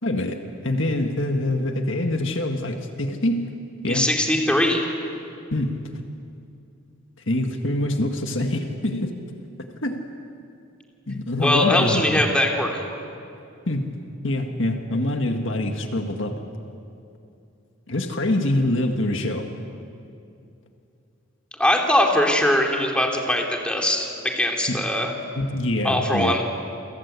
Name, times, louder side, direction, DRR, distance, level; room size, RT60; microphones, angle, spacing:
voice 1, 0.0-3.5 3.8-4.1 5.5-5.8 7.3-9.1 9.8-10.1 11.1-12.2 13.7-14.0 14.2-16.4 17.9-19.5 24.7-24.8 25.3-26.4, left 1 dB, 60° left, 4 dB, 1.8 m, -25 dB
voice 2, 3.9-4.9 11.4-12.8 21.6-25.1 25.8-26.4, left 1 dB, 5° left, 1 dB, 3.1 m, -21 dB
29.0 x 24.5 x 8.4 m, 2.6 s
head